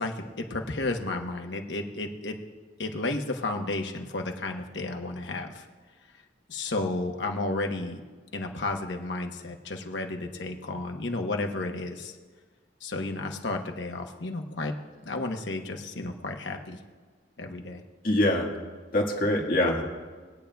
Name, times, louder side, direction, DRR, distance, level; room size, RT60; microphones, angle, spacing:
voice 1, 0.0-2.4 2.8-5.7 6.5-8.0 8.3-12.2 12.8-14.7 15.0-16.8 17.4-17.8, left 2 dB, 70° left, 3 dB, 1.0 m, -32 dB
voice 2, 18.0-18.5 18.9-19.8, left 1 dB, 50° left, 0 dB, 1.7 m, -24 dB
22.0 x 8.8 x 2.3 m, 1.5 s
head